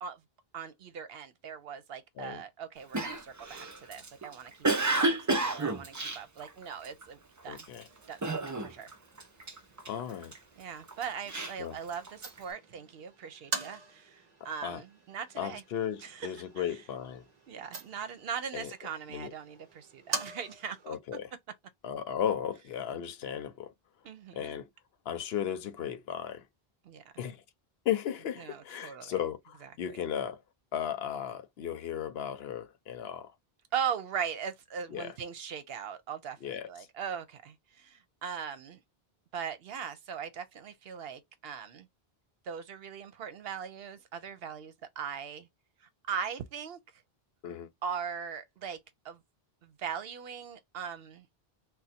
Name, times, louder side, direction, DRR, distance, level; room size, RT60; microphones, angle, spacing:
voice 1, 0.5-4.7 4.9-7.7 8.1-8.9 10.6-15.6 16.0-16.6 17.5-21.0 24.0-24.6 26.8-27.0 28.4-29.2 29.6-29.7 33.7-38.8 39.3-41.9 42.4-45.5 45.8-46.8 47.8-48.8 49.0-49.2 49.6-51.3, right 7 dB, 75° right, 0.9 m, -40 dB
Cough, 2.9-7.0 7.5-7.8 8.2-8.9 9.2-10.4 10.9-12.4, right 2 dB, 25° right, 0.4 m, -31 dB
voice 2, 7.5-7.9 9.9-10.3 11.6-11.8 14.6-14.8 15.4-17.2 18.5-18.7 19.1-19.3 20.9-21.3 21.8-23.7 24.3-24.7 25.1-26.5 27.2-27.4 27.8-30.4 30.7-33.3 34.9-35.1 36.4-36.7 47.4-47.7, left 9 dB, 75° left, 0.8 m, -35 dB
sound 1, 7.9-20.9, right 3 dB, 45° right, 0.8 m, -45 dB
2.5 x 2.3 x 4.0 m
omnidirectional pair, 1.0 m